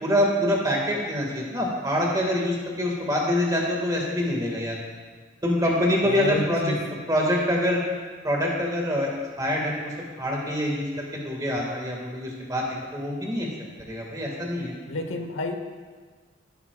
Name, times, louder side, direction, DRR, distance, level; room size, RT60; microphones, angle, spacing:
voice 1, 0.0-4.8 5.4-6.7 7.1-7.8 8.2-9.1 9.4-9.9 10.2-12.7 12.9-13.5 13.9-14.7, left 1 dB, 20° right, -2 dB, 1.8 m, -25 dB
voice 2, 6.0-6.8 14.9-15.6, left 1 dB, 90° left, 5 dB, 1.0 m, -29 dB
15.5 x 9.2 x 2.4 m, 1.5 s
head